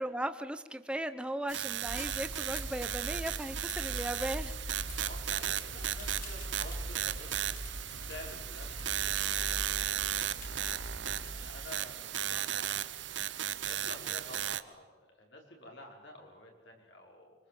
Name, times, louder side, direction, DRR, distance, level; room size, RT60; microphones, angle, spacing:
voice 1, 0.0-4.5, right 1 dB, 5° right, 11 dB, 1.0 m, -37 dB
sound 1, 1.5-14.6, right 11 dB, 65° right, 0.9 m, -36 dB
sound 2, 1.9-11.5, equal, 45° left, 4.3 m, -42 dB
voice 2, 5.0-12.8 13.2-17.3, left 1 dB, 60° left, 0 dB, 5.2 m, -51 dB
24.5 x 24.0 x 7.8 m, 1.3 s
head